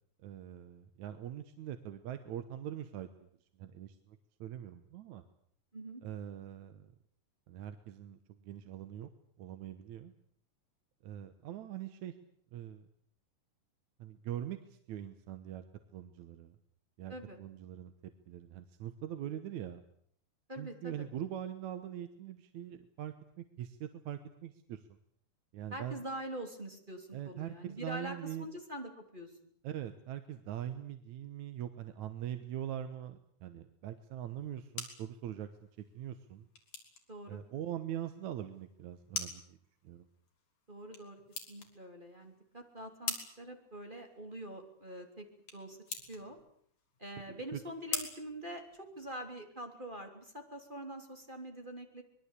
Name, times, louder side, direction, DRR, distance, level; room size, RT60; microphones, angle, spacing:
voice 1, 0.2-3.3 3.6-5.2 6.0-6.9 7.5-9.1 9.4-10.1 11.0-12.1 12.5-12.9 14.0-15.6 15.9-16.6 17.0-19.8 20.6-24.8 25.5-26.0 27.1-28.5 29.6-35.5 35.9-36.5 37.3-39.6 39.8-40.1 47.3-47.6, right 11 dB, 70° right, 9 dB, 2.4 m, -42 dB
voice 2, 20.5-21.1 25.7-29.3 37.1-37.4 40.7-41.2 41.5-45.3 45.5-46.4 47.0-52.0, right 1 dB, 15° right, 4 dB, 3.2 m, -45 dB
sound 1, 34.3-49.3, left 5 dB, 70° left, 5.0 m, -46 dB
25.0 x 21.5 x 8.3 m, 0.63 s
omnidirectional pair, 3.6 m